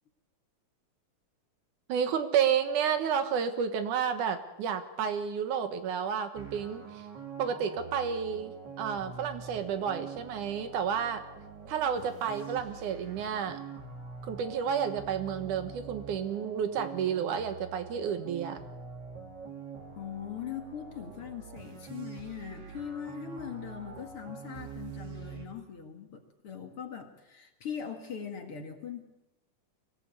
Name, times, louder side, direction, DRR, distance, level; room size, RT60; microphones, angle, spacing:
voice 1, 1.9-6.8 7.4-8.5 8.8-11.2 11.7-13.6 14.3-18.6, right 7 dB, 80° right, 8 dB, 2.9 m, -31 dB
sound 1, 6.3-25.5, right 6 dB, 35° right, 2.3 m, -45 dB
voice 2, 20.0-29.0, left 8 dB, 50° left, 4 dB, 2.6 m, -41 dB
24.0 x 16.5 x 8.4 m, 0.98 s
omnidirectional pair, 3.5 m